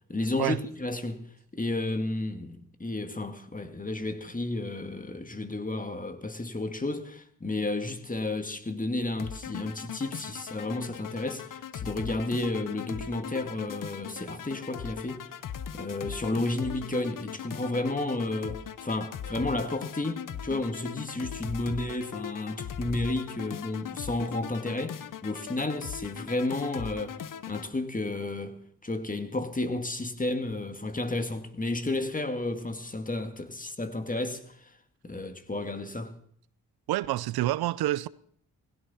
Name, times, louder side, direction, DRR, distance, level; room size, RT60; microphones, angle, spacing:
voice 1, 0.1-1.3 1.5-15.4 15.7-27.2 27.5-28.6 28.8-34.7 35.0-36.1, left 2 dB, 20° left, 2.0 m, -32 dB
sound 1, 9.2-27.7, left 8 dB, 60° left, 0.9 m, -39 dB
voice 2, 36.9-38.1, right 15 dB, 85° right, 0.5 m, -27 dB
16.5 x 16.5 x 4.2 m
supercardioid pair, 55°, 37 cm